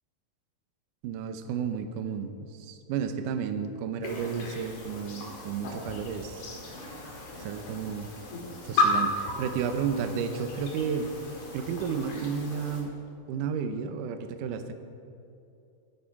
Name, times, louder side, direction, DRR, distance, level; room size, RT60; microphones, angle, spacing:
voice 1, 1.0-6.4 7.4-8.1 8.5-11.1 11.5-13.0 13.3-14.7, right 6 dB, 75° right, 8 dB, 2.0 m, -32 dB
sound 1, 4.0-12.8, left 2 dB, 55° left, 3.1 m, -34 dB
12.5 x 11.5 x 5.8 m, 2.6 s
omnidirectional pair, 4.4 m